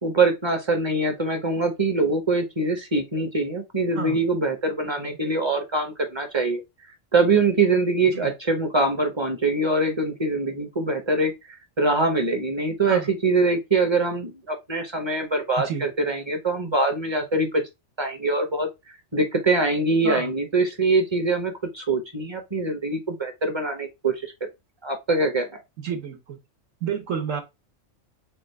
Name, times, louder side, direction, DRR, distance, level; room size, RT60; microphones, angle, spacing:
voice 1, 0.0-6.6 7.1-11.3 11.8-17.6 18.0-18.7 19.1-24.3 24.8-25.5, right 3 dB, 25° right, 0.7 m, -23 dB
voice 2, 25.8-26.4 26.8-27.4, right 7 dB, 75° right, 1.2 m, -29 dB
4.5 x 2.4 x 3.2 m
omnidirectional pair, 1.4 m